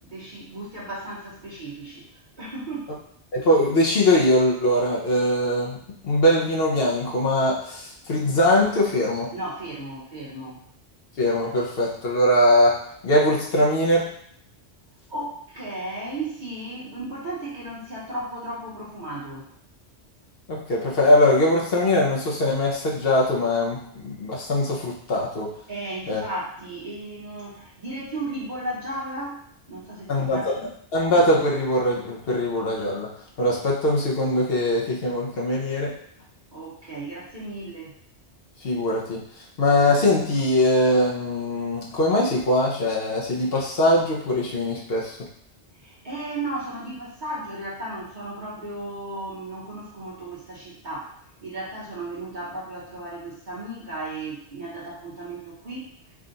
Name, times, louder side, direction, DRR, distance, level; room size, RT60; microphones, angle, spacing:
voice 1, 0.0-2.1 2.4-2.9 9.3-10.6 15.1-19.5 25.7-30.7 36.5-38.0 45.7-51.1 51.4-55.9, right 2 dB, 45° right, -7 dB, 1.3 m, -35 dB
voice 2, 3.3-5.8 6.0-9.3 11.2-14.1 20.5-25.5 26.1-26.2 30.1-30.5 30.9-33.1 33.4-36.0 38.6-39.2 39.6-45.3, left 1 dB, 60° left, -3 dB, 0.9 m, -21 dB
3.6 x 2.4 x 3.9 m, 0.68 s
omnidirectional pair, 1.2 m